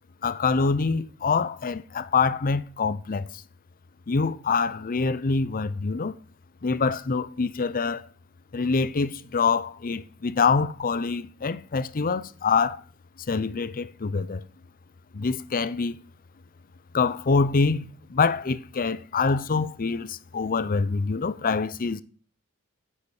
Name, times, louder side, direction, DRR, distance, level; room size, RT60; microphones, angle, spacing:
voice 1, 0.2-3.4 4.1-6.1 6.6-8.1 8.5-12.8 13.3-14.4 15.1-16.0 16.9-22.0, left 4 dB, 40° left, 0.6 m, -25 dB
10.0 x 6.6 x 7.1 m
head